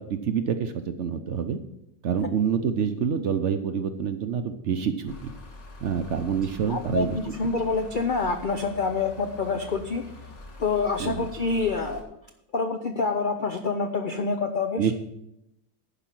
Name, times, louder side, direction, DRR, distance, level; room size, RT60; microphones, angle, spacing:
voice 1, 0.0-1.6 2.0-5.3 5.8-7.2 11.0-11.3 14.8-14.9, right 7 dB, 60° right, 8 dB, 0.8 m, -27 dB
sound 1, 5.1-12.0, left 2 dB, 50° left, 1.7 m, -44 dB
voice 2, 6.7-10.0 10.6-12.2 12.5-14.9, left 4 dB, 65° left, 6 dB, 0.5 m, -27 dB
10.5 x 5.0 x 7.4 m, 0.83 s
omnidirectional pair, 1.7 m